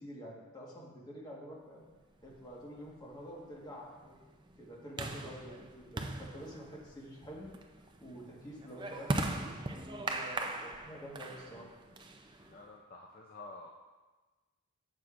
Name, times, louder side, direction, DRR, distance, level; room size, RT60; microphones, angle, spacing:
voice 1, 0.0-1.9 2.2-4.2 4.6-7.5 8.0-11.7, equal, 20° left, -3 dB, 1.5 m, -48 dB
sound 1, 2.3-12.7, right 2 dB, 20° right, 0.5 m, -40 dB
voice 2, 12.4-13.7, left 2 dB, 40° left, -1 dB, 0.6 m, -50 dB
11.5 x 7.6 x 2.5 m, 1.3 s
head